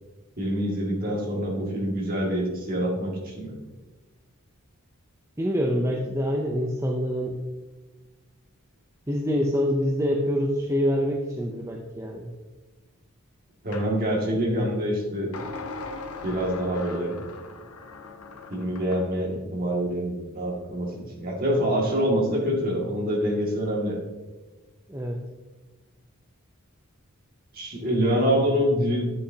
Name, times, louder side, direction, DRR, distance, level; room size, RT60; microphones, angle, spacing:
voice 1, 0.4-3.6 13.6-15.3 16.2-17.2 18.5-24.0 27.5-29.0, equal, 45° right, -2 dB, 2.1 m, -26 dB
voice 2, 5.4-7.4 9.1-12.3 24.9-25.2, equal, 15° right, 1 dB, 0.6 m, -26 dB
sound 1, 13.7-13.9 15.3-19.1, left 3 dB, 90° left, 0.9 m, -39 dB
10.0 x 8.4 x 2.8 m, 1.2 s
head